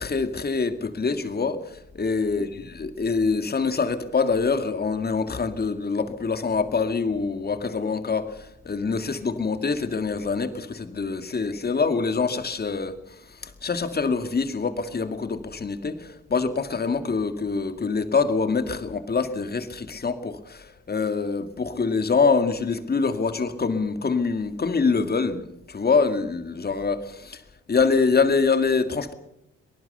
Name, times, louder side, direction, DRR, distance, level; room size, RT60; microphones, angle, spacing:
voice 1, 0.0-13.0 13.4-27.4 27.7-29.1, left 4 dB, 30° left, 10 dB, 2.2 m, -25 dB
23.5 x 19.0 x 6.8 m, 0.82 s
cardioid pair, 90°, 30 cm